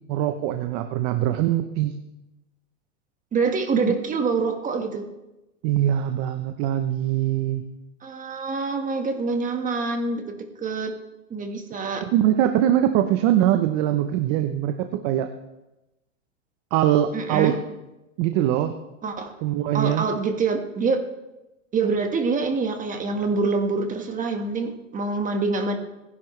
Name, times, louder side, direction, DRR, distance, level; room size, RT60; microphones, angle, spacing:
voice 1, 0.1-1.9 5.6-7.6 12.0-15.3 16.7-17.7 18.2-18.8 19.4-20.1, right 11 dB, 45° right, 8 dB, 0.9 m, -22 dB
voice 2, 3.3-5.0 8.0-10.9 11.3-12.0 17.1-17.5 19.0-19.3 19.7-21.0 21.7-25.7, right 4 dB, 20° right, 5 dB, 1.6 m, -25 dB
27.5 x 11.0 x 3.3 m, 1.0 s
supercardioid pair, 130°, 39 cm